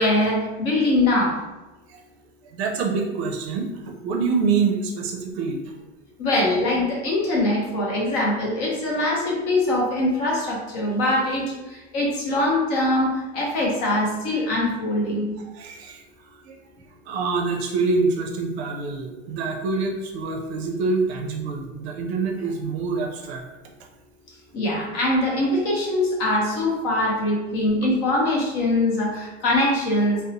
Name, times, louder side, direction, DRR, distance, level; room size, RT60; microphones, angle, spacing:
voice 1, 0.0-1.3 6.2-15.3 24.5-30.2, left 1 dB, 35° left, -3 dB, 0.6 m, -22 dB
voice 2, 2.4-5.7 15.5-16.0 16.3-16.6 17.1-23.4 27.0-27.2, right 4 dB, 65° right, 1 dB, 0.5 m, -26 dB
2.8 x 2.0 x 2.5 m, 1.1 s
supercardioid pair, 175°, 35 cm